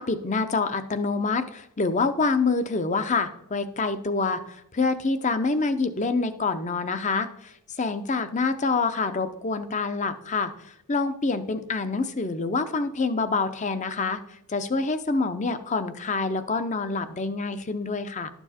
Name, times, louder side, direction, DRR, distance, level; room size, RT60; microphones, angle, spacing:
voice 1, 0.0-4.4 4.7-7.3 7.8-10.5 10.9-14.2 14.5-18.3, left 4 dB, 35° left, 11 dB, 0.6 m, -26 dB
12.0 x 7.0 x 4.2 m, 0.78 s
head